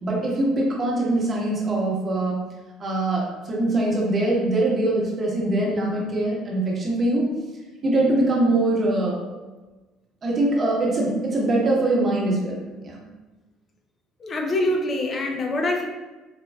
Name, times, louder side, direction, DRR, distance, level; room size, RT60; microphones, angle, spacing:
voice 1, 0.0-2.4 2.8-7.2 7.8-9.2 10.2-13.0, right 2 dB, 40° right, -3 dB, 1.0 m, -23 dB
voice 2, 14.2-15.8, left 1 dB, 40° left, 2 dB, 0.5 m, -24 dB
4.4 x 2.2 x 2.2 m, 1.2 s
hypercardioid pair, 70°, 0 cm